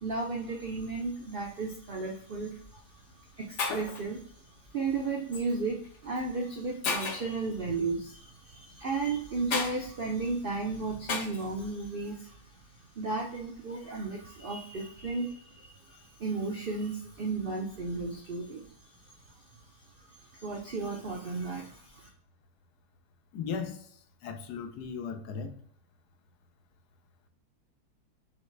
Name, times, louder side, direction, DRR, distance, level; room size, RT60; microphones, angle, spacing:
voice 1, 0.0-12.6 12.9-18.7 20.0-22.1, right 3 dB, 70° right, -1 dB, 0.5 m, -34 dB
Shatter, 2.4-2.6 3.3-3.4 3.6-4.0 5.3-5.5 6.2-6.3 6.8-7.4 9.5-9.8 11.1-11.5, left 4 dB, 60° left, 0.9 m, -32 dB
voice 2, 23.3-23.9 24.2-25.6, left 6 dB, 80° left, 7 dB, 1.1 m, -36 dB
4.0 x 3.1 x 3.1 m, 0.64 s
omnidirectional pair, 1.7 m